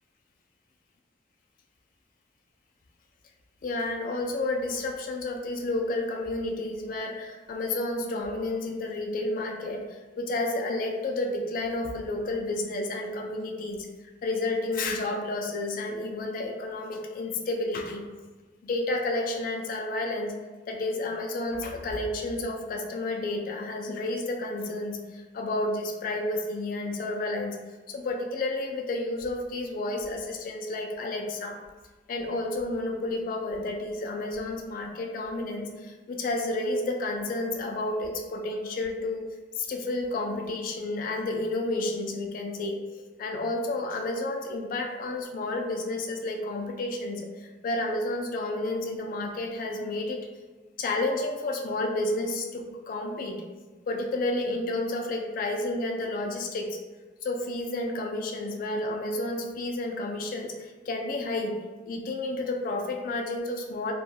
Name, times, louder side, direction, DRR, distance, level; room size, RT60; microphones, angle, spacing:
voice 1, 3.6-13.8 14.2-18.0 18.6-20.3 20.7-27.6 27.9-31.6 32.1-39.2 39.6-50.3 50.8-53.4 53.9-56.8 57.2-61.6 61.9-63.9, left 2 dB, 50° left, 2 dB, 0.3 m, -31 dB
2.3 x 2.2 x 2.7 m, 1.3 s
head